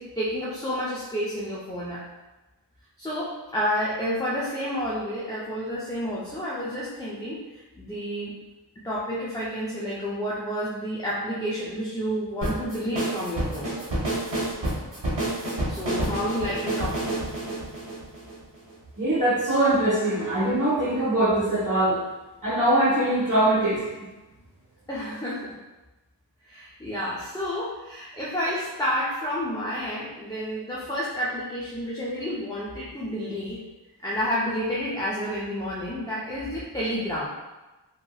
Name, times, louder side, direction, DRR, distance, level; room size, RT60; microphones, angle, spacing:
voice 1, 0.0-2.0 3.0-8.3 8.8-13.8 15.7-17.0 24.9-25.5 26.5-33.6 34.0-37.3, equal, 10° left, -8 dB, 0.5 m, -30 dB
sound 1, 12.4-18.7, right 1 dB, 80° right, 0.9 m, -29 dB
voice 2, 19.0-22.0 22.4-23.8, right 1 dB, 45° right, -7 dB, 1.1 m, -22 dB
2.9 x 2.5 x 2.3 m, 1.1 s
wide cardioid pair, 45°, 43 cm